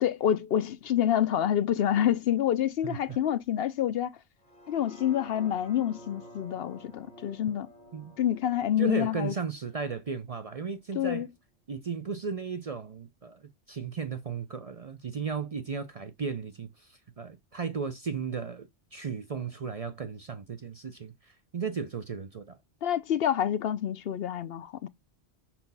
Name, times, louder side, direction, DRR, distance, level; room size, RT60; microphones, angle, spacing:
voice 1, 0.0-4.2 4.7-7.7 8.2-9.3 10.9-11.3 22.8-24.9, left 10 dB, 65° left, 0.8 m, -27 dB
voice 2, 2.8-3.2 7.9-8.1 8.8-11.3 11.7-22.6, right 6 dB, 40° right, 0.5 m, -35 dB
sound 1, 4.4-10.5 11.0-11.1, equal, 35° left, 2.4 m, -51 dB
5.8 x 4.3 x 5.4 m
omnidirectional pair, 1.1 m